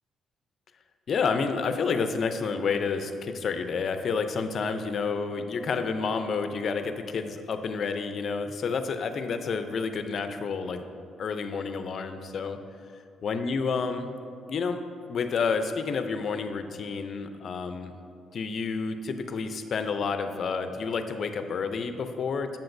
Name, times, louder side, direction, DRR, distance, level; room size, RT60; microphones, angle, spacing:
voice 1, 1.1-10.9 11.2-12.6 13.2-14.2 14.5-14.8 15.1-17.9 18.3-22.6, left 5 dB, 55° left, 8 dB, 0.5 m, -29 dB
7.7 x 6.9 x 2.6 m, 2.4 s
cardioid pair, 90°, 0 cm